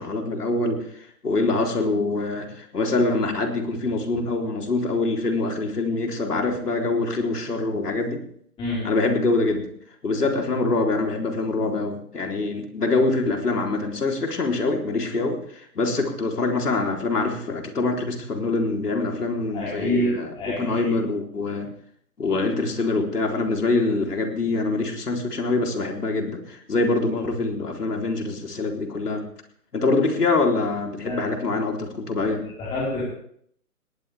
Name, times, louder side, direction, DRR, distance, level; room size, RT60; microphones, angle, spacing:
voice 1, 0.0-8.2 8.8-9.7 10.0-21.7 22.2-29.2 29.7-32.5, left 3 dB, 80° left, 2 dB, 3.8 m, -24 dB
voice 2, 19.5-20.9 31.0-31.2 32.2-32.3 32.6-33.0, left 1 dB, 10° left, -7 dB, 4.7 m, -27 dB
19.5 x 19.0 x 3.5 m, 0.65 s
hypercardioid pair, 150°, 46 cm